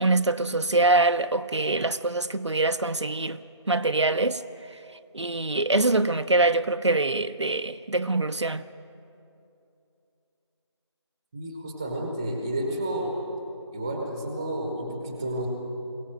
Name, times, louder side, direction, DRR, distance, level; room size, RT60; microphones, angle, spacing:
voice 1, 0.0-3.4 3.7-4.4 5.1-8.7, right 2 dB, 70° right, 0.8 m, -24 dB
voice 2, 11.3-13.1 13.7-15.5, right 1 dB, 5° right, 1.1 m, -31 dB
22.0 x 17.5 x 7.8 m
figure-of-eight pair, 170°, 15 cm